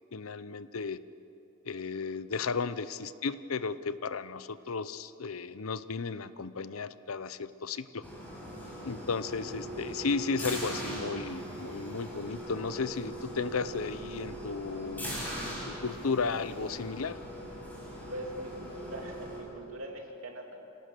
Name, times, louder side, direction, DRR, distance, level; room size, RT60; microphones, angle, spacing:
voice 1, 0.1-1.0 1.6-8.1 8.8-17.2, left 4 dB, 85° left, 15 dB, 0.7 m, -34 dB
sound 1, 8.0-19.4, right 1 dB, 10° left, 6.1 m, -40 dB
voice 2, 18.1-20.6, right 1 dB, 80° right, 2 dB, 3.0 m, -42 dB
26.5 x 18.0 x 6.8 m, 2.9 s
head